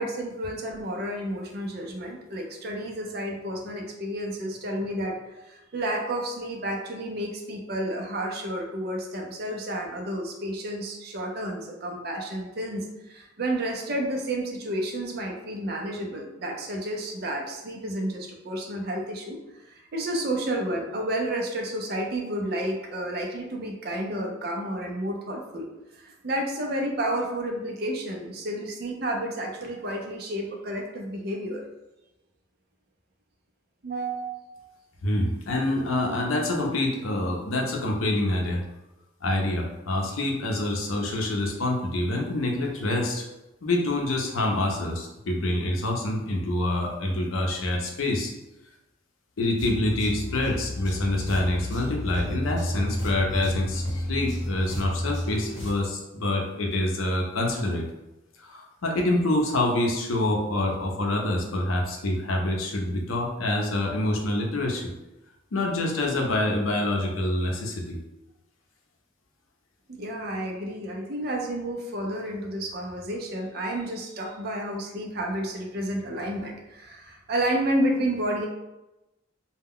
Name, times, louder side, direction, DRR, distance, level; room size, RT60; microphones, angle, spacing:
voice 1, 0.0-25.7 25.9-31.6 33.8-34.6 70.0-78.5, right 1 dB, 50° right, 1 dB, 0.5 m, -31 dB
voice 2, 35.0-38.6 39.2-43.2 43.6-48.3 49.4-57.8 58.4-64.9 65.5-68.0, left 1 dB, 85° left, 0 dB, 0.6 m, -26 dB
sound 1, 49.6-55.7, left 1 dB, 65° left, 0.9 m, -31 dB
2.2 x 2.1 x 3.6 m, 0.98 s
head